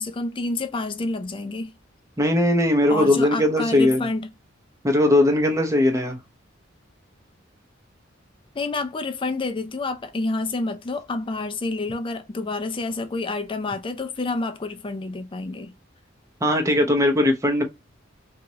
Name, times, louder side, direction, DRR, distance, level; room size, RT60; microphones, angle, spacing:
voice 1, 0.0-1.7 2.9-4.3 8.5-15.7, left 3 dB, 25° left, 0.5 m, -28 dB
voice 2, 2.2-4.0 4.8-6.2 16.4-17.6, left 1 dB, 15° right, 0.7 m, -19 dB
2.8 x 2.5 x 2.9 m
head